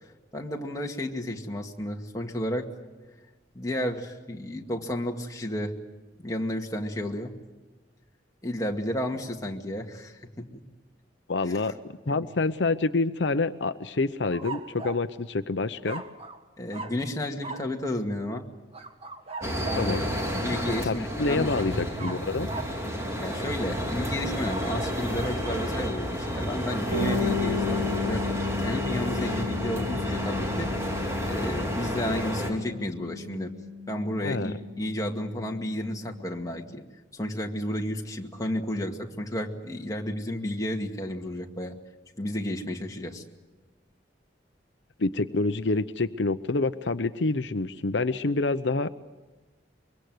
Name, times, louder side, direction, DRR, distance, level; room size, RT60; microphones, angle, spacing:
voice 1, 0.0-2.7 3.5-5.8 6.2-7.3 8.4-10.6 11.4-11.6 12.1-12.3 16.6-18.5 19.6-20.0 20.4-21.9 23.2-30.7 31.2-33.5 33.9-36.8 37.1-41.8 42.2-43.2, left 1 dB, 20° left, 1 dB, 2.1 m, -32 dB
voice 2, 11.3-11.8 12.1-16.0 19.8-20.1 20.8-22.5 34.2-34.5 45.0-48.9, left 3 dB, 75° left, 10 dB, 0.8 m, -27 dB
sound 1, 14.3-15.1 15.8-16.4 16.7-17.0 17.4-17.7 18.7-19.9 22.0-22.8 24.3-25.0, right 3 dB, 35° right, 1.8 m, -39 dB
sound 2, 19.4-32.5, equal, 15° right, 3.6 m, -31 dB
Bass guitar, 26.9-36.5, left 4 dB, 70° right, 6.7 m, -34 dB
24.5 x 23.0 x 7.9 m, 1.2 s
head